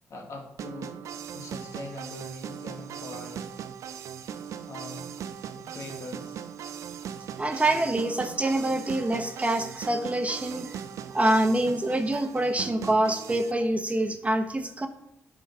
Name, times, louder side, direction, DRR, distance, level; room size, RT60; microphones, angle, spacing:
voice 1, 0.1-1.0 1.3-3.5 4.7-5.1 5.6-6.5, left 2 dB, 70° left, 0 dB, 2.1 m, -42 dB
sound 1, 0.6-13.5, right 8 dB, 75° right, 0.5 m, -39 dB
voice 2, 7.4-10.8 11.1-14.9, right 1 dB, 25° right, 7 dB, 1.0 m, -26 dB
8.9 x 3.9 x 6.1 m, 0.77 s
supercardioid pair, 55°, 5 cm